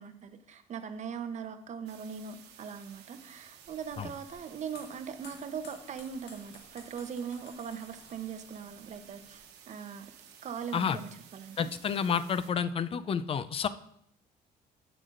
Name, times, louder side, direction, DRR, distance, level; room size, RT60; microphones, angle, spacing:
voice 1, 0.0-10.1 10.4-11.7, right 7 dB, 45° right, 0.7 m, -40 dB
sound 1, 1.9-12.5, right 8 dB, 80° right, 1.1 m, -55 dB
sound 2, 3.7-9.4, left 3 dB, 80° left, 1.9 m, -56 dB
voice 2, 11.6-13.7, left 7 dB, 35° left, 0.4 m, -30 dB
8.1 x 7.6 x 2.5 m
cardioid pair, 110°, 17 cm